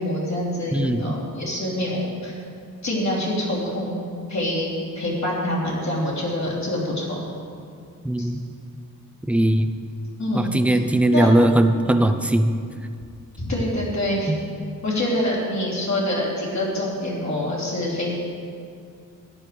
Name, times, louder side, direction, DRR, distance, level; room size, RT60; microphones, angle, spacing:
voice 1, 0.0-2.4 2.8-4.0 4.3-7.2 8.2-8.3 10.2-10.8 11.1-11.3 13.4-14.3 14.8-18.1, left 1 dB, 55° left, -5 dB, 3.0 m, -26 dB
voice 2, 0.7-1.1 8.0-8.4 9.3-9.7 10.3-12.5 14.3-14.4, right 1 dB, 5° right, 7 dB, 0.5 m, -19 dB
13.5 x 10.5 x 3.3 m, 2.4 s
wide cardioid pair, 105°, 34 cm